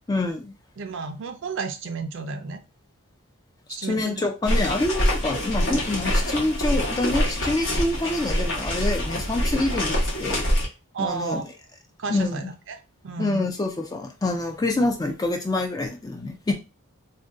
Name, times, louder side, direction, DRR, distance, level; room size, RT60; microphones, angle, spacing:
voice 1, 0.1-0.5 3.9-10.4 11.0-11.4 12.1-12.5 13.2-16.5, left 2 dB, 15° left, 3 dB, 0.3 m, -26 dB
voice 2, 0.8-2.6 3.7-4.2 10.9-11.4 12.0-13.5, right 5 dB, 55° right, 7 dB, 0.4 m, -32 dB
sound 1, 4.4-10.7, equal, 55° left, 0.9 m, -25 dB
2.5 x 2.2 x 3.5 m, 0.29 s
head